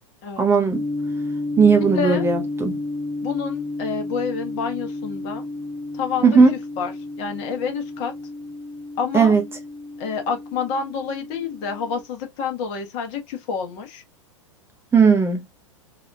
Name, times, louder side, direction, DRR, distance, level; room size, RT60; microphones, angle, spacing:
voice 1, 0.4-0.8 1.6-2.7 6.2-6.5 9.1-9.4 14.9-15.4, right 5 dB, 15° right, 0.7 m, -16 dB
sound 1, 0.7-12.0, left 2 dB, 25° left, 0.9 m, -32 dB
voice 2, 1.8-2.3 3.2-5.4 5.9-8.1 9.0-9.4 10.0-14.0, left 6 dB, 45° left, 1.2 m, -28 dB
4.1 x 2.6 x 2.2 m
hypercardioid pair, 100°, 17 cm